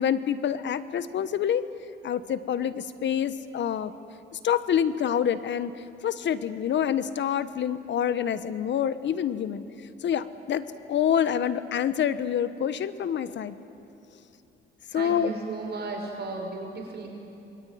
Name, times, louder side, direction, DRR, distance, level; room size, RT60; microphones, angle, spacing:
voice 1, 0.0-1.7 2.0-3.9 4.3-9.6 10.0-13.6 14.9-15.3, left 9 dB, 65° left, 13 dB, 1.3 m, -27 dB
voice 2, 14.9-17.1, right 3 dB, 55° right, 2 dB, 6.0 m, -35 dB
27.5 x 22.5 x 9.5 m, 2.9 s
cardioid pair, 90°, 20 cm